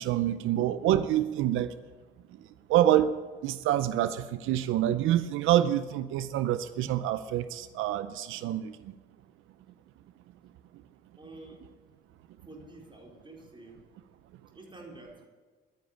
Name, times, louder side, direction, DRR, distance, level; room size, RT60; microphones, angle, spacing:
voice 1, 0.0-1.7 2.7-3.1 3.4-8.8, right 12 dB, 90° right, 13 dB, 0.6 m, -26 dB
voice 2, 11.2-11.6 12.5-13.8 14.5-15.3, right 2 dB, 25° right, 0 dB, 4.5 m, -48 dB
11.5 x 10.5 x 8.8 m, 1.5 s
cardioid pair, 90°, 20 cm